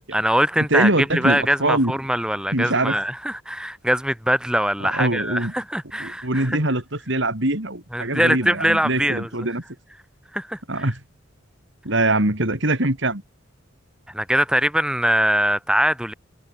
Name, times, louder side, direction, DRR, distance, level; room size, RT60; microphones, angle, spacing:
voice 1, 0.1-6.6 7.9-9.5 10.3-10.9 14.1-16.1, equal, 5° right, 4.7 m, -22 dB
voice 2, 0.7-1.9 2.5-3.0 4.8-5.5 6.0-9.6 10.7-11.0 11.8-13.2, right 2 dB, 60° right, 3.8 m, -23 dB
head